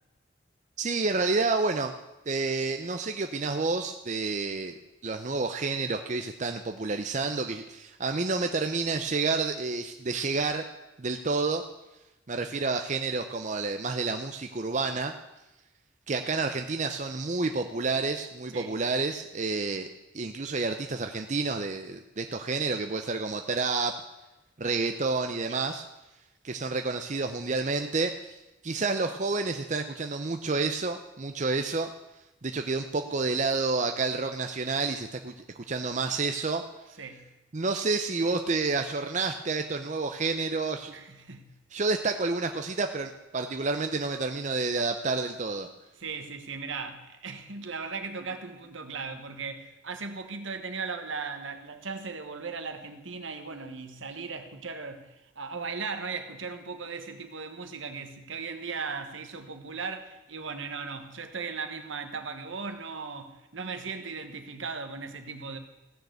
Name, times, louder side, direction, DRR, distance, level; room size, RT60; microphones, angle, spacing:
voice 1, 0.8-1.9 2.3-4.8 5.0-10.7 11.0-11.6 12.3-15.1 16.1-19.9 20.1-24.0 24.6-25.8 26.4-28.4 28.6-31.9 32.4-36.6 37.5-40.9 41.7-45.7, right 3 dB, 35° right, 6 dB, 0.6 m, -29 dB
voice 2, 37.0-37.3 40.9-41.6 46.0-65.6, right 4 dB, 75° right, 7 dB, 1.4 m, -37 dB
16.0 x 6.6 x 8.0 m, 0.97 s
head